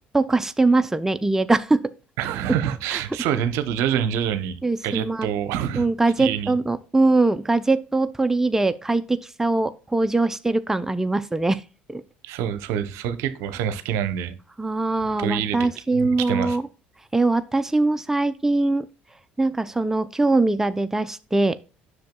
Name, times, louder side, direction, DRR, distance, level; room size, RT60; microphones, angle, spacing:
voice 1, 0.1-1.8 2.9-3.0 4.6-5.3 5.8-11.6 11.9-12.0 14.6-16.7 17.1-18.9 19.4-21.6, right 2 dB, 10° right, 0.5 m, -22 dB
voice 2, 2.2-5.9 6.2-6.6 12.2-14.3 15.2-16.6, right 9 dB, 65° right, 0.7 m, -26 dB
10.5 x 6.3 x 2.2 m
hypercardioid pair, 60°, 5 cm